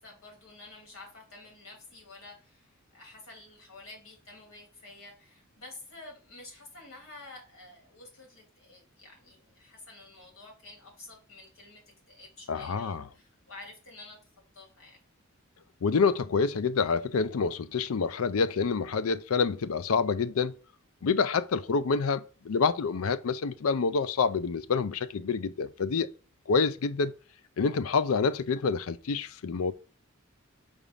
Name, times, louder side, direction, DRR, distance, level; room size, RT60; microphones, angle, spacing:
voice 1, 0.0-14.2 14.5-15.0, left 2 dB, 70° left, 2.9 m, -50 dB
voice 2, 12.5-13.1 15.8-20.6 21.0-26.1 26.5-27.1 27.6-29.7, left 5 dB, 90° left, 0.5 m, -27 dB
4.9 x 3.6 x 5.4 m
head